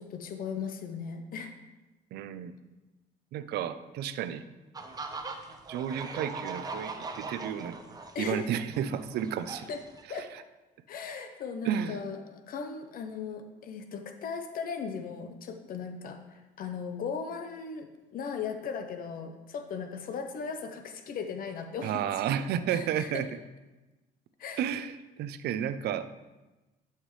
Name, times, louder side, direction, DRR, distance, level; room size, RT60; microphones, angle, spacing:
voice 1, 0.0-1.5 8.1-8.5 9.7-9.8 10.1-10.3 10.9-16.2 16.6-17.9 18.1-22.0 22.7-23.3 24.4-24.6, left 6 dB, 55° left, 7 dB, 0.8 m, -37 dB
voice 2, 2.1-2.5 3.3-4.4 5.7-7.8 8.2-9.7 11.6-12.0 21.8-23.3 24.6-26.1, right 9 dB, 70° right, 12 dB, 0.5 m, -32 dB
sound 1, 4.7-10.0, right 3 dB, 20° right, 0.8 m, -40 dB
11.0 x 5.8 x 3.2 m, 1.1 s
cardioid pair, 110°, 17 cm